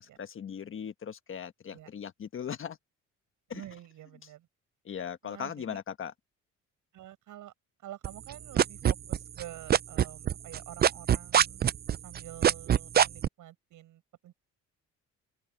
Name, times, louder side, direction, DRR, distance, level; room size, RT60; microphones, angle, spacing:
voice 1, 0.0-2.8 3.5-3.6 4.8-6.1, left 8 dB, 40° left, 1.4 m, -39 dB
voice 2, 3.5-4.5 5.2-5.8 6.9-7.5 7.8-11.6 12.0-14.3, right 13 dB, 75° right, 7.9 m, -48 dB
sound 1, 8.0-9.4 9.7-13.3, right 9 dB, 30° right, 0.4 m, -22 dB
cardioid pair, 110°, 31 cm